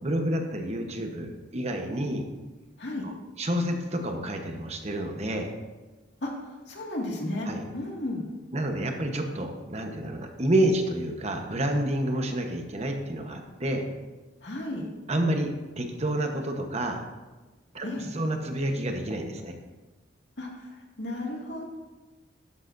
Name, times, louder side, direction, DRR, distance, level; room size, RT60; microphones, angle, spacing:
voice 1, 0.0-2.3 3.0-5.5 7.5-7.6 8.5-13.9 15.1-17.0 17.7-19.5, right 1 dB, 40° right, 4 dB, 1.0 m, -29 dB
voice 2, 6.7-7.5 7.7-8.2 14.4-14.8 17.8-18.1 20.4-20.5 21.0-21.6, left 1 dB, 75° left, -1 dB, 2.0 m, -33 dB
12.5 x 9.8 x 2.6 m, 1.2 s
head